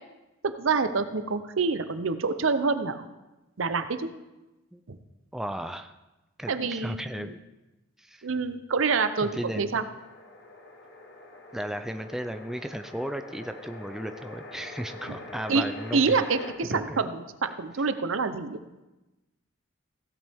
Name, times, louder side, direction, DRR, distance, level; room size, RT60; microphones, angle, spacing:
voice 1, 0.4-3.1 3.6-4.1 4.9-5.0 6.5-7.3 8.2-9.8 15.5-15.6 15.9-18.6, right 4 dB, 75° right, 11 dB, 0.7 m, -27 dB
voice 2, 5.3-5.9 6.4-7.4 8.0-8.3 9.2-9.8 11.5-16.1 16.7-17.0, equal, ahead, 7 dB, 0.4 m, -35 dB
sound 1, 9.9-16.5, left 2 dB, 60° left, 1.3 m, -44 dB
16.0 x 8.5 x 3.5 m, 1.0 s
head